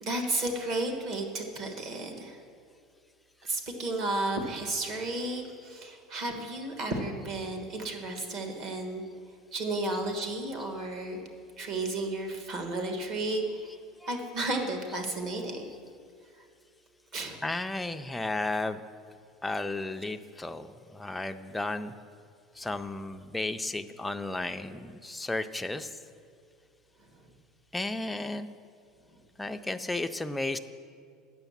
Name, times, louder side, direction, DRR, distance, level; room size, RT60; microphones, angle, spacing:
voice 1, 0.0-2.4 3.4-9.0 9.5-11.2 11.6-13.8 14.1-15.6 17.1-17.4 24.7-24.8, right 2 dB, 45° right, 4 dB, 1.3 m, -33 dB
voice 2, 17.2-18.8 19.4-21.9 22.6-25.9 27.7-28.5 29.4-30.6, left 2 dB, 5° left, 8 dB, 0.3 m, -34 dB
9.0 x 6.4 x 7.1 m, 2.4 s
cardioid pair, 160°, 0 cm